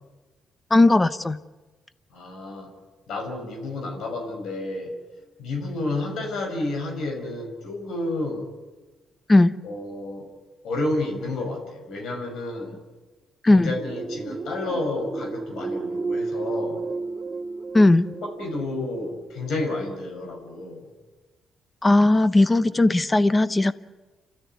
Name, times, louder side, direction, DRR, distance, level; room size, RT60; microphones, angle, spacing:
voice 1, 0.7-1.4 9.3-9.5 13.4-13.7 17.7-18.1 21.8-23.7, left 2 dB, 20° left, 15 dB, 0.9 m, -17 dB
voice 2, 2.1-2.7 3.1-4.9 5.4-8.5 9.6-10.3 10.6-12.8 13.4-16.8 18.2-20.9, left 2 dB, 80° left, 2 dB, 6.1 m, -30 dB
sound 1, 13.8-20.3, right 3 dB, 35° right, 0.7 m, -33 dB
29.5 x 13.0 x 9.7 m, 1.2 s
cardioid pair, 90°, 0 cm